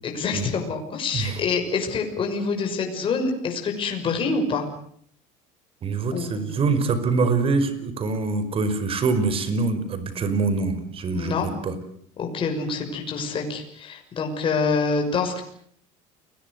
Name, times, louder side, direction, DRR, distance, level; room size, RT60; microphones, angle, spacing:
voice 1, 0.0-4.6 6.1-6.6 11.1-11.5 12.2-15.4, left 4 dB, 35° left, 3 dB, 6.2 m, -26 dB
voice 2, 5.8-11.4 11.6-11.7, right 4 dB, 35° right, 12 dB, 5.2 m, -24 dB
30.0 x 21.5 x 8.1 m, 0.64 s
cardioid pair, 135°, 16 cm